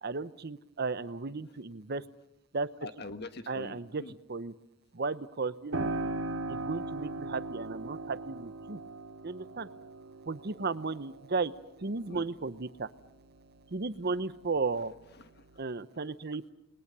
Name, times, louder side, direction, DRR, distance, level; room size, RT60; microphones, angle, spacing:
voice 1, 0.0-2.0 2.5-2.7 3.5-4.0 4.3-4.5 4.9-5.9 6.5-8.8 9.2-9.7 10.3-11.5 11.8-12.9 13.7-14.9 15.6-16.5, right 4 dB, 50° right, 14 dB, 0.8 m, -34 dB
voice 2, 2.8-4.2 8.7-8.8 12.1-12.3 14.7-15.4, left 2 dB, 50° left, 9 dB, 1.4 m, -45 dB
Piano, 5.7-14.2 14.6-15.6, right 2 dB, 80° right, 2.1 m, -39 dB
29.5 x 21.0 x 6.8 m, 0.86 s
head